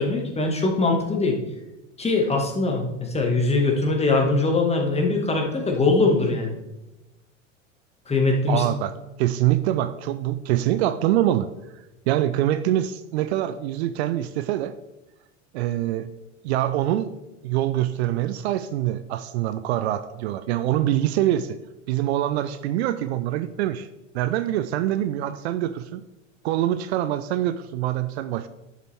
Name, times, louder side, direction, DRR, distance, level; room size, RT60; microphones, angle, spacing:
voice 1, 0.0-1.4 2.0-6.5 8.1-8.6, left 3 dB, 15° left, 2 dB, 2.1 m, -22 dB
voice 2, 8.5-11.5 12.1-14.7 15.5-16.1 16.4-17.1 17.4-21.6 21.9-23.9 24.1-26.0 26.4-28.5, right 13 dB, 55° right, 13 dB, 0.6 m, -24 dB
11.0 x 7.4 x 3.7 m, 0.99 s
figure-of-eight pair, 85°, 38 cm